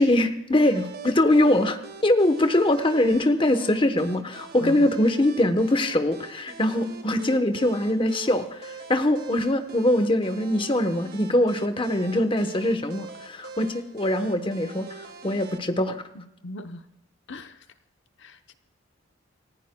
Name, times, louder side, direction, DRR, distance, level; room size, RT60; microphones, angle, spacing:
voice 1, 0.0-16.0, left 1 dB, 25° left, 8 dB, 1.0 m, -23 dB
sound 1, 0.6-15.6, right 4 dB, 50° right, 2.0 m, -43 dB
voice 2, 16.1-16.9 17.3-17.7 18.2-18.5, left 1 dB, 65° left, 8 dB, 0.9 m, -39 dB
29.0 x 15.0 x 2.3 m, 0.82 s
head